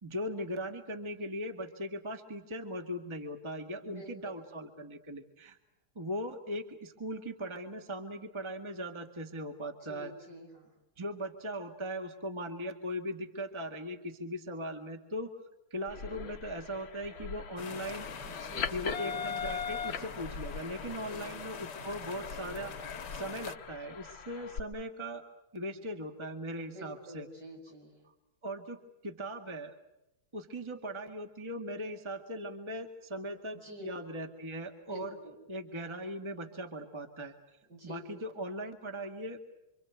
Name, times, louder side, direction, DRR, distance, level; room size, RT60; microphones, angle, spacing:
voice 1, 0.0-5.6 6.0-10.1 11.0-15.3 15.7-18.1 18.7-25.2 25.5-27.3 28.4-29.7 30.3-35.2 35.5-37.4 37.8-39.5, equal, 15° right, 4 dB, 1.9 m, -39 dB
voice 2, 3.8-4.4 9.8-10.7 18.2-19.0 21.1-21.3 26.7-27.9 33.6-33.9 34.9-35.4 37.7-38.2, equal, 60° right, 0 dB, 8.2 m, -48 dB
sound 1, 15.9-24.6, left 6 dB, 85° left, 2.2 m, -41 dB
sound 2, 17.6-23.6, left 5 dB, 65° left, 2.0 m, -44 dB
27.0 x 26.0 x 8.1 m, 0.93 s
omnidirectional pair, 2.1 m